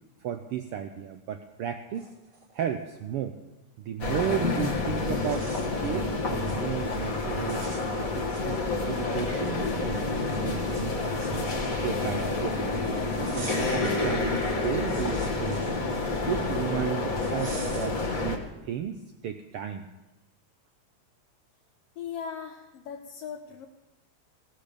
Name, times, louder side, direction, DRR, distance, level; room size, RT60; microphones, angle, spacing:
voice 1, 0.2-2.1 2.5-3.4 3.8-7.7 8.0-11.0 11.3-12.7 13.1-15.8 16.3-19.9, right 9 dB, 80° right, 7 dB, 1.3 m, -34 dB
sound 1, 1.6-1.7 1.9-3.1 4.6-4.7 5.2-6.0 6.3-6.6 7.0-7.2 7.5-8.9 9.3-9.4 10.3-12.4 13.1-14.0 14.4-16.5 17.2-18.2, right 3 dB, 25° right, 1.4 m, -46 dB
sound 2, 4.0-18.4, left 3 dB, 40° left, 1.4 m, -29 dB
voice 2, 22.0-23.7, left 7 dB, 70° left, 3 dB, 1.6 m, -38 dB
17.0 x 13.5 x 5.2 m, 1.0 s
omnidirectional pair, 3.4 m